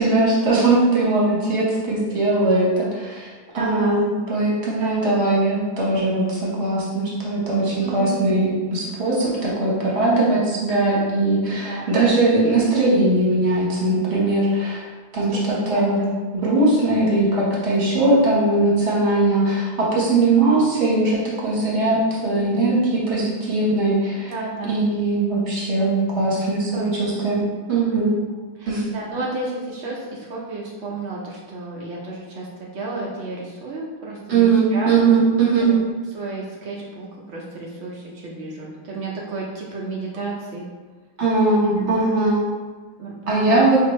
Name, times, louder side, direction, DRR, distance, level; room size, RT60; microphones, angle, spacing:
voice 1, 0.0-3.3 3.5-14.8 15.1-16.0 16.3-24.3 24.6-28.1 28.7-28.9 34.3-35.7 41.2-42.4 43.3-43.8, right 2 dB, 40° right, -6 dB, 1.1 m, -20 dB
voice 2, 3.5-4.0 4.8-5.1 7.8-8.2 11.5-11.9 15.3-16.1 24.2-24.8 26.3-26.4 26.7-27.3 28.6-32.5 32.7-34.9 35.6-35.8 36.1-40.6 41.6-41.9 43.0-43.6, right 3 dB, 85° right, -4 dB, 0.6 m, -32 dB
5.3 x 2.7 x 3.1 m, 1.3 s
omnidirectional pair, 2.2 m